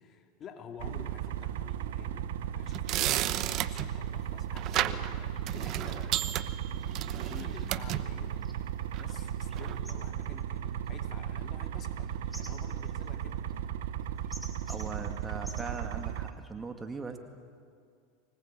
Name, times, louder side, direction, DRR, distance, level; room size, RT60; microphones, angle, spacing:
voice 1, 0.0-8.5 8.9-13.4, left 7 dB, 35° left, 5 dB, 2.6 m, -50 dB
sound 1, 0.8-16.3, right 10 dB, 75° right, 1.0 m, -36 dB
sound 2, 2.6-3.9 4.6-5.1 5.5-8.0 8.9-9.1 9.6-9.8, right 13 dB, 50° right, 0.9 m, -33 dB
sound 3, 4.7-4.9 5.3-5.5 5.9-16.5, left 1 dB, 5° left, 2.3 m, -53 dB
voice 2, 14.7-17.2, right 4 dB, 20° right, 6 dB, 2.0 m, -40 dB
25.0 x 19.5 x 8.8 m, 2.3 s
hypercardioid pair, 100°, 0 cm